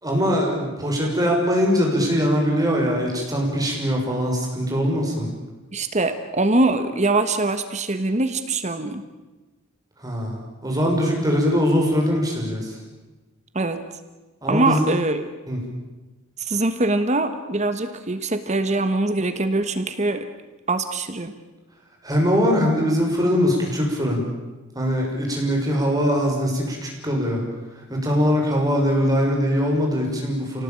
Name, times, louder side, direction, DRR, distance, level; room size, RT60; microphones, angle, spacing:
voice 1, 0.0-5.3 10.0-12.8 14.4-14.8 15.5-15.6 22.0-24.2 24.7-27.4 27.9-30.6, equal, 20° right, -1 dB, 5.9 m, -22 dB
voice 2, 5.7-9.0 13.5-13.8 14.5-15.3 16.4-20.3 20.7-21.3, right 2 dB, 35° right, 9 dB, 1.4 m, -23 dB
29.0 x 18.5 x 8.9 m, 1.2 s
head